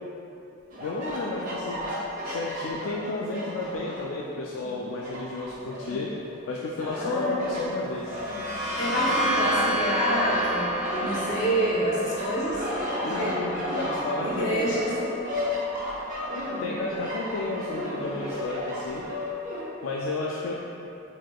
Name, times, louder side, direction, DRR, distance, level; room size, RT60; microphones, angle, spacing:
sound 1, 0.7-4.2 4.6-6.4 6.8-7.6 8.1-11.7 12.0-19.6, left 1 dB, 40° right, 0.9 m, -33 dB
voice 1, 0.8-1.8 2.2-6.1 6.5-8.2 13.0-14.7 16.6-19.0 19.8-20.5, left 2 dB, 85° left, -3 dB, 0.4 m, -32 dB
voice 2, 6.9-7.3 8.8-10.7 11.0-12.6 13.0-13.4 14.2-14.9, equal, 60° left, -8 dB, 1.3 m, -27 dB
sound 2, 7.8-15.4, right 1 dB, 10° right, 0.6 m, -31 dB
4.6 x 4.1 x 2.3 m, 2.8 s
head